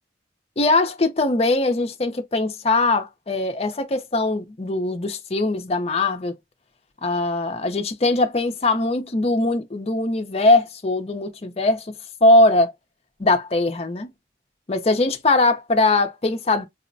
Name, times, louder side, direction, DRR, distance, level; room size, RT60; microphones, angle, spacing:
voice 1, 0.6-6.4 7.0-11.9 12.2-12.7 13.2-14.1 14.7-16.7, left 2 dB, 35° left, 0.6 m, -21 dB
4.8 x 2.1 x 2.5 m
head